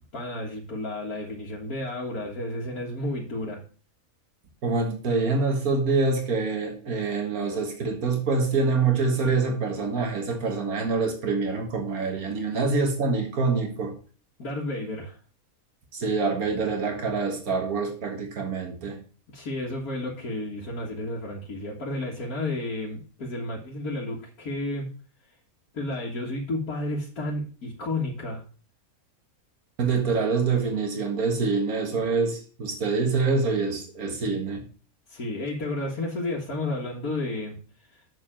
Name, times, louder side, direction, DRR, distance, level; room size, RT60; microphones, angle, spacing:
voice 1, 0.1-3.6 14.4-15.2 19.3-24.9 25.7-28.4 35.1-37.6 37.9-38.0, left 2 dB, 80° left, 2.1 m, -32 dB
voice 2, 4.6-13.9 15.9-19.0 29.8-34.6, right 4 dB, 80° right, 2.2 m, -25 dB
6.8 x 5.9 x 7.3 m
omnidirectional pair, 1.5 m